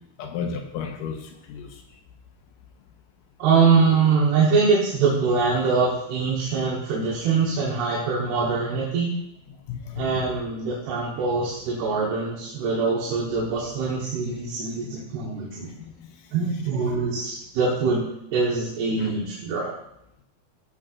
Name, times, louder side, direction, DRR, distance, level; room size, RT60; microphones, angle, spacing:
voice 1, 0.2-1.7 9.7-10.2 14.8-14.9 15.8-15.9 19.0-19.1, left 6 dB, 75° left, 4 dB, 2.1 m, -33 dB
voice 2, 3.4-9.1 9.9-15.7 16.3-19.7, right 4 dB, 90° right, -4 dB, 3.3 m, -23 dB
15.0 x 7.1 x 2.5 m, 0.81 s
omnidirectional pair, 4.5 m